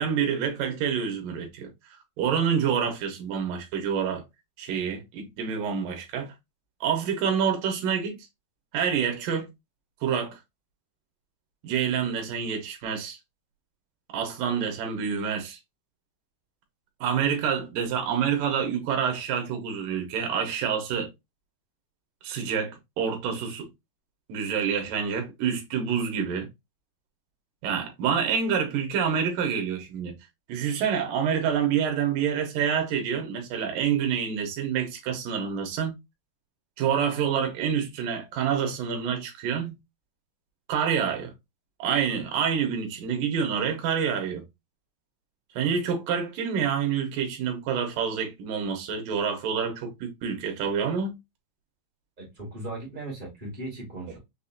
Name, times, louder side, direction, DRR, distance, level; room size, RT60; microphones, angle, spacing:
voice 1, 0.0-1.7 2.2-4.2 4.6-6.3 6.8-8.2 8.7-9.5 10.0-10.4 11.6-13.2 14.1-15.6 17.0-21.1 22.2-23.7 24.3-26.5 27.6-30.1 30.5-35.9 36.8-39.7 40.7-41.3 41.8-44.4 45.5-51.2, right 7 dB, 70° right, 2.4 m, -27 dB
voice 2, 52.2-54.2, right 2 dB, 30° right, 0.9 m, -37 dB
6.3 x 2.7 x 2.6 m
omnidirectional pair, 4.8 m